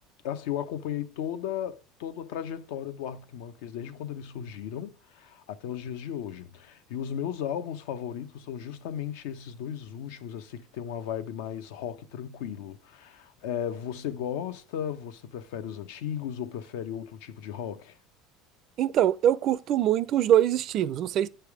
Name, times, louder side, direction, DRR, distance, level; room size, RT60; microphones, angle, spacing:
voice 1, 0.2-18.0, left 9 dB, 85° left, 0.7 m, -35 dB
voice 2, 18.8-21.3, right 11 dB, 45° right, 0.4 m, -23 dB
8.7 x 3.4 x 4.8 m
cardioid pair, 150°, 0 cm